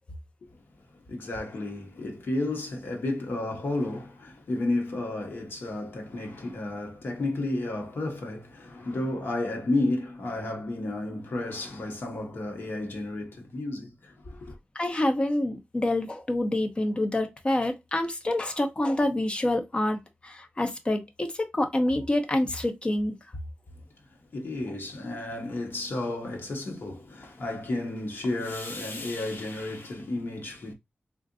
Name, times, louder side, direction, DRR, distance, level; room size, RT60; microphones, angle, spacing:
voice 1, 1.1-14.6 24.3-30.7, left 2 dB, 70° left, 1.1 m, -32 dB
voice 2, 14.7-23.1, left 1 dB, 30° left, 0.6 m, -27 dB
3.7 x 2.5 x 2.5 m
wide cardioid pair, 125°, 4 cm